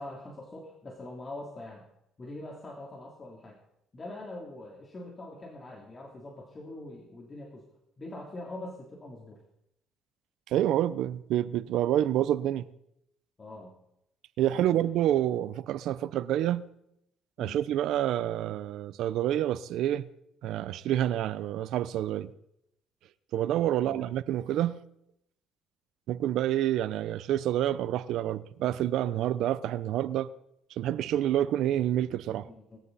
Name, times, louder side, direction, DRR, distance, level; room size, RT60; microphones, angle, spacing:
voice 1, 0.0-1.8 2.2-3.6 3.9-7.7 8.0-9.4 13.4-13.7 14.5-14.8 17.4-17.6 23.8-24.1 32.3-32.8, left 2 dB, 30° left, 3.3 m, -43 dB
voice 2, 10.5-12.7 14.4-16.7 17.4-20.1 20.4-22.3 23.3-24.8 26.1-30.3 30.8-32.4, right 12 dB, 75° right, 0.8 m, -28 dB
20.5 x 14.0 x 4.2 m
supercardioid pair, 85°, 0 cm